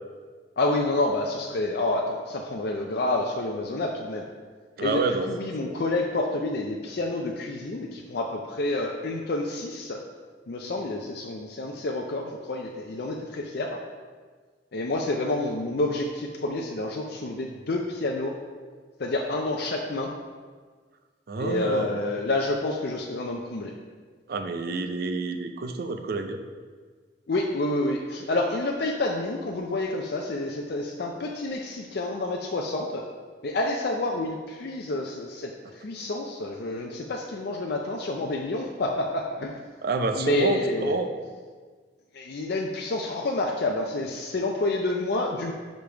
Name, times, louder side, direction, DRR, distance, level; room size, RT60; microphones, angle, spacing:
voice 1, 0.6-4.2 4.8-5.0 5.3-10.0 10.5-13.8 14.7-18.3 19.0-20.1 21.4-23.7 27.3-33.0 33.4-39.6 40.2-40.9 42.1-45.5, left 2 dB, 60° left, 0 dB, 0.5 m, -28 dB
voice 2, 4.8-5.3 5.6-5.8 21.3-21.9 24.3-26.4 39.8-41.1, right 3 dB, 55° right, 6 dB, 0.5 m, -28 dB
5.2 x 5.1 x 4.5 m, 1.5 s
head